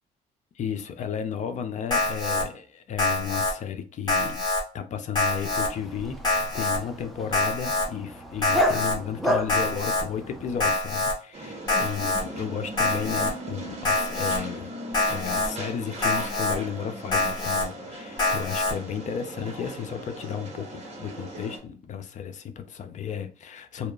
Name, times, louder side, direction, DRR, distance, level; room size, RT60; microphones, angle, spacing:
voice 1, 0.5-4.5 4.7-6.2 6.5-14.8 15.0-23.9, left 7 dB, 45° left, 0.5 m, -33 dB
Alarm, 1.9-2.4 3.0-3.5 4.1-4.6 5.2-5.7 6.2-6.8 7.3-7.9 8.4-9.0 9.5-10.0 10.6-11.1 11.7-12.2 12.8-13.3 13.9-14.4 14.9-15.5 16.0-16.6 17.1-17.7 18.2-18.7, left 2 dB, 25° left, 1.3 m, -25 dB
Dog, 5.4-10.8, left 1 dB, ahead, 0.6 m, -31 dB
sound 1, 11.3-21.6, right 1 dB, 40° right, 1.3 m, -39 dB
2.8 x 2.3 x 2.3 m
cardioid pair, 110°, 17 cm